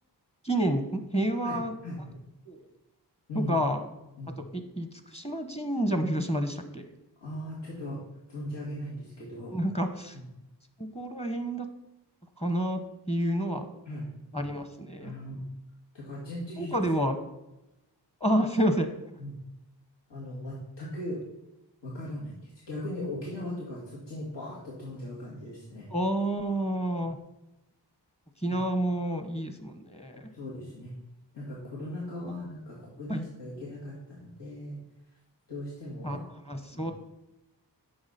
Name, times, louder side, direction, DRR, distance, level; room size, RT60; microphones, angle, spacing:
voice 1, 0.4-1.7 2.5-2.6 3.3-3.8 4.5-6.8 9.5-10.1 10.8-11.7 12.4-12.8 13.1-13.7 14.3-15.1 16.6-17.2 18.2-18.9 25.9-27.2 28.4-30.3 33.1-33.2 36.0-36.2 36.5-36.9, right 1 dB, 15° left, 7 dB, 1.0 m, -29 dB
voice 2, 1.4-2.1 3.3-3.5 4.2-4.4 7.2-8.0 8.3-9.5 10.1-10.3 13.9-14.0 15.0-15.4 15.9-16.8 19.2-19.4 20.1-21.2 21.8-25.9 28.5-28.6 30.3-30.9 31.3-34.8 35.5-36.2 36.7-36.9, left 1 dB, 85° left, -6 dB, 2.2 m, -38 dB
8.7 x 6.3 x 4.2 m, 0.94 s
cardioid pair, 60°, 42 cm